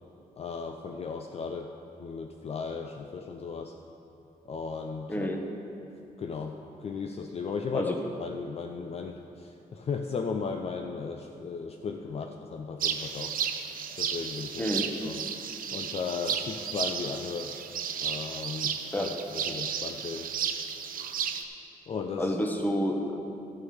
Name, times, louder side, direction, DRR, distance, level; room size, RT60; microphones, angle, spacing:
voice 1, 0.4-1.7 2.0-3.7 4.5-5.3 6.2-6.5 6.8-13.3 14.0-14.7 15.0-15.2 15.7-17.5 18.0-20.3 21.9-22.4, left 5 dB, 40° left, 4 dB, 0.5 m, -36 dB
voice 2, 5.1-5.4 7.7-8.0 14.6-14.9 18.9-19.1 22.2-23.4, equal, 10° left, 3 dB, 1.1 m, -29 dB
sound 1, 12.8-21.4, right 7 dB, 65° right, 0.7 m, -33 dB
13.0 x 6.4 x 6.2 m, 2.8 s
cardioid pair, 125°, 15 cm